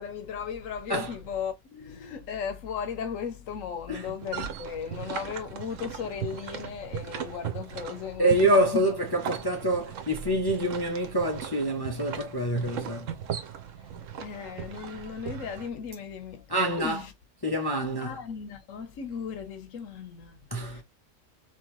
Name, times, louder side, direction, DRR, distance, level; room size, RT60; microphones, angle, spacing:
voice 1, 0.0-8.8 14.2-16.4 16.8-17.1 18.0-20.8, left 7 dB, 85° left, 1.2 m, -36 dB
sound 1, 4.1-15.7, right 8 dB, 80° right, 1.1 m, -38 dB
voice 2, 8.2-13.1 16.5-17.0 17.4-18.2 20.5-20.8, right 1 dB, 25° left, 0.6 m, -26 dB
4.4 x 3.0 x 3.0 m
omnidirectional pair, 1.3 m